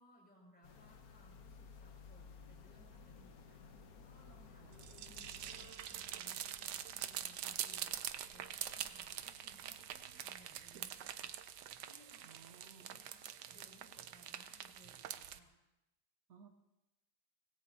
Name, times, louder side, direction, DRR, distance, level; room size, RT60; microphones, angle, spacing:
voice 1, 0.0-15.5, equal, 5° left, -3 dB, 6.2 m, -65 dB
sound 1, 0.6-5.7, left 5 dB, 55° left, 1.4 m, -57 dB
sound 2, 2.1-12.0, left 3 dB, 75° left, 2.3 m, -66 dB
sound 3, 4.7-15.4, right 10 dB, 70° right, 1.3 m, -45 dB
voice 2, 12.2-13.0 16.3-16.5, right 7 dB, 55° right, 5 dB, 1.2 m, -60 dB
25.0 x 18.5 x 2.8 m, 0.95 s
omnidirectional pair, 2.0 m